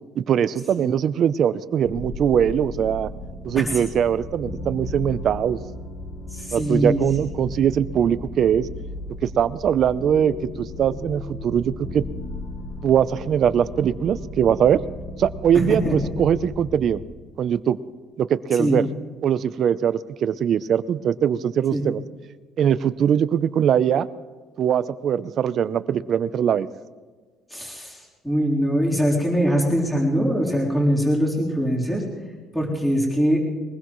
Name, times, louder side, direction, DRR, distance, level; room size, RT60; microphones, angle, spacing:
voice 1, 0.2-3.1 3.4-5.6 6.5-8.7 9.2-12.0 12.8-14.8 15.2-17.0 17.4-17.8 18.2-18.9 19.2-22.0 22.6-24.1 24.6-26.7, right 9 dB, 50° right, 14 dB, 0.6 m, -21 dB
sound 1, 1.8-17.0, left 1 dB, 50° left, 3.1 m, -35 dB
voice 2, 6.3-7.0 15.7-16.0 18.5-18.8 21.7-21.8 27.5-32.0 32.5-33.4, equal, 5° left, -4 dB, 3.9 m, -22 dB
22.5 x 20.0 x 3.2 m, 1.4 s
cardioid pair, 130°, 0 cm